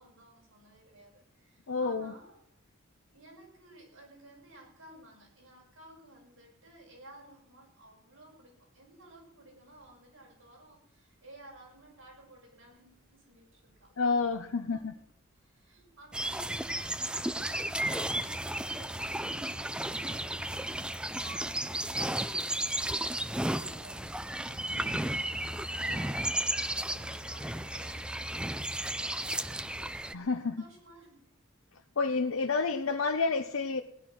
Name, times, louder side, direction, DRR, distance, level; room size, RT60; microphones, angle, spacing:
voice 1, 0.0-2.4 3.1-13.9 14.5-15.0 15.3-20.7 21.2-25.1 25.4-31.3, right 1 dB, 70° right, -2 dB, 6.6 m, -55 dB
voice 2, 1.7-2.1 14.0-14.9 30.1-30.6 32.0-33.8, left 4 dB, 70° left, 5 dB, 0.8 m, -29 dB
sound 1, 9.5-28.7, left 1 dB, 30° left, 1.5 m, -53 dB
sound 2, 16.1-30.1, right 1 dB, 5° right, 0.4 m, -34 dB
17.5 x 10.5 x 6.2 m, 0.79 s
head